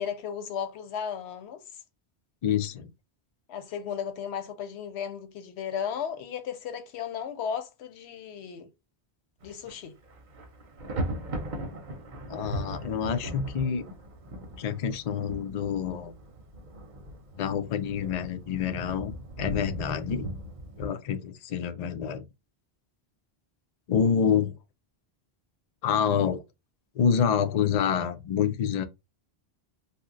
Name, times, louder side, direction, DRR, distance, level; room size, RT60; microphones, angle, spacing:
voice 1, 0.0-1.6 3.5-8.7 9.4-10.0, left 7 dB, 85° left, 0.9 m, -35 dB
voice 2, 2.4-2.9 12.3-13.8 14.6-16.1 17.4-20.3 20.8-22.2 23.9-24.6 25.8-26.4 27.0-28.8, left 7 dB, 55° left, 0.5 m, -27 dB
Thunder, 9.4-9.7 10.0-20.9, right 1 dB, 50° right, 0.8 m, -38 dB
2.7 x 2.1 x 3.6 m
omnidirectional pair, 1.1 m